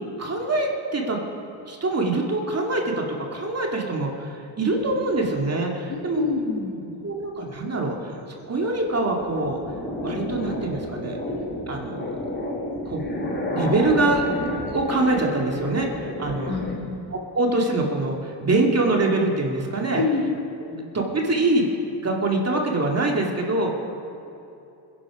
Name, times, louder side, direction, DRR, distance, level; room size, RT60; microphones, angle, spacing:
voice 1, 0.2-1.2 1.7-6.2 7.0-8.2 8.5-9.6 10.0-11.2 11.7-12.0 12.9-13.0 13.5-14.2 14.7-16.5 17.3-20.0 20.9-21.7 21.9-23.7, right 2 dB, 30° right, 0 dB, 2.4 m, -24 dB
sound 1, 4.6-6.6 7.1-7.6 8.0-16.7, left 1 dB, 25° left, 3.5 m, -31 dB
voice 2, 5.9-6.9 16.5-17.0 19.9-20.3 20.7-20.8, left 4 dB, 55° left, -1 dB, 3.1 m, -27 dB
21.0 x 11.0 x 4.9 m, 2.8 s
cardioid pair, 90°, 46 cm